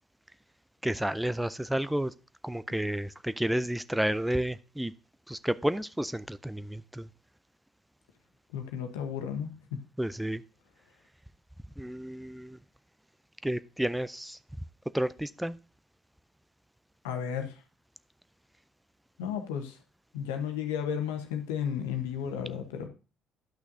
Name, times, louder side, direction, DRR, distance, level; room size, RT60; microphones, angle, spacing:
voice 1, 0.8-2.1 2.4-4.9 5.3-7.1 10.0-10.4 11.8-12.6 13.4-14.4 14.9-15.6, right 1 dB, 5° right, 16 dB, 0.4 m, -31 dB
voice 2, 8.5-9.5 17.0-17.5 19.2-19.8 20.1-22.9, left 8 dB, 80° left, 6 dB, 1.1 m, -33 dB
11.5 x 6.0 x 2.7 m, 0.35 s
hypercardioid pair, 55°, 0 cm